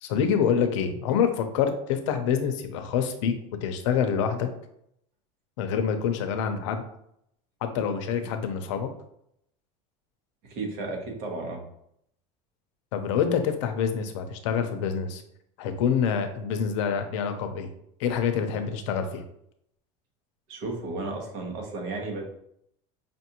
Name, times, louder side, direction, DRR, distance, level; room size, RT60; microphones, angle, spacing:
voice 1, 0.0-3.3 3.6-4.5 5.6-6.8 7.6-8.9 12.9-15.2 15.6-17.7 18.0-19.2, left 7 dB, 85° left, 7 dB, 0.6 m, -26 dB
voice 2, 10.4-11.6 20.5-22.2, right 3 dB, 65° right, 0 dB, 1.3 m, -33 dB
5.2 x 2.6 x 2.9 m, 0.73 s
cardioid pair, 165°, 15 cm